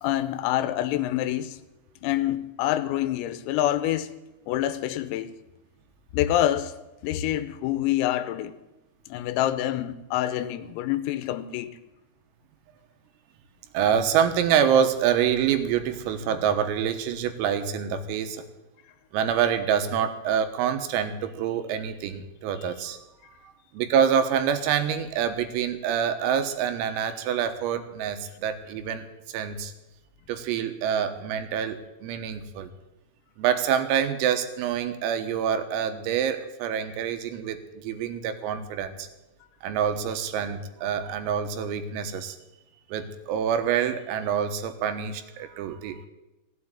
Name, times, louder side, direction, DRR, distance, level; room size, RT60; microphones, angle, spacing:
voice 1, 0.0-1.6 2.0-4.1 4.5-5.3 6.1-6.7 7.0-8.5 9.1-11.8, left 13 dB, 90° left, 3.6 m, -26 dB
voice 2, 13.7-18.4 19.1-23.0 23.7-29.7 30.3-32.7 33.4-39.1 39.6-42.4 42.9-46.1, right 8 dB, 85° right, 3.9 m, -26 dB
15.5 x 8.5 x 9.7 m
omnidirectional pair, 5.9 m